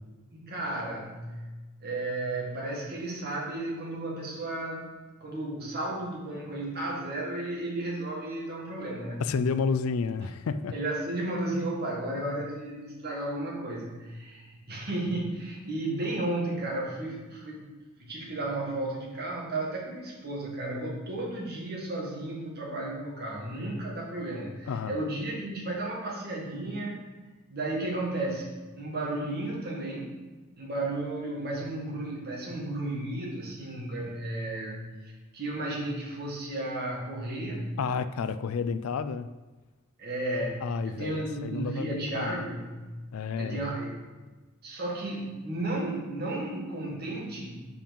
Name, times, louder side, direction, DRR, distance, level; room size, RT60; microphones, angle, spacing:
voice 1, 0.3-1.4 1.8-4.9 5.2-9.2 10.7-17.7 18.0-27.0 27.5-28.5 28.8-30.2 30.6-37.7 40.0-42.7 43.3-44.0 44.6-47.7, right 2 dB, 50° right, -3 dB, 1.9 m, -33 dB
voice 2, 9.2-10.7 24.7-25.0 37.8-39.3 40.6-42.4 43.1-43.7, left 5 dB, 80° left, 12 dB, 0.4 m, -31 dB
5.3 x 5.1 x 5.3 m, 1.2 s
head